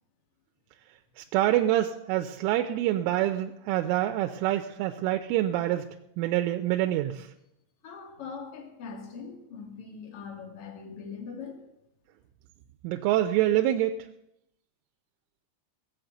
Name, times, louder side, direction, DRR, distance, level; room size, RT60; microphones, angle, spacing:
voice 1, 1.2-5.8 6.2-7.3 12.8-14.0, right 13 dB, 85° right, 6 dB, 3.1 m, -26 dB
voice 2, 7.8-11.6, left 5 dB, 45° left, 2 dB, 2.0 m, -41 dB
17.0 x 6.4 x 8.0 m, 0.81 s
omnidirectional pair, 5.6 m